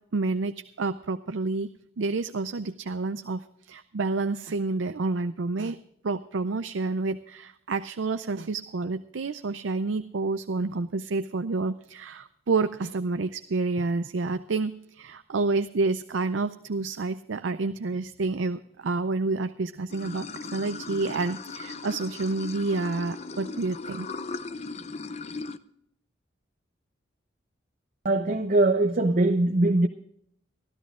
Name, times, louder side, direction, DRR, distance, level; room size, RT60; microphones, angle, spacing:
voice 1, 0.1-1.7 2.0-5.8 6.0-24.1, right 3 dB, 80° right, 0.5 m, -29 dB
Water / Sink (filling or washing), 19.9-25.6, left 4 dB, 35° left, 0.6 m, -38 dB
voice 2, 28.0-29.9, right 2 dB, 45° right, 0.7 m, -22 dB
24.0 x 13.5 x 2.4 m
head